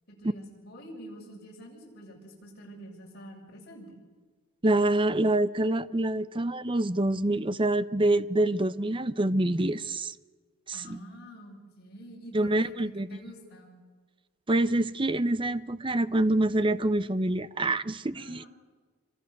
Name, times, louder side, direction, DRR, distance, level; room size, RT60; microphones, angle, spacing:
voice 1, 0.1-4.0 10.7-13.8 18.1-18.5, equal, 50° left, 7.5 m, -47 dB
voice 2, 4.6-10.1 10.7-11.0 12.3-13.1 14.5-18.5, right 1 dB, 25° right, 0.7 m, -26 dB
27.5 x 25.5 x 6.6 m
head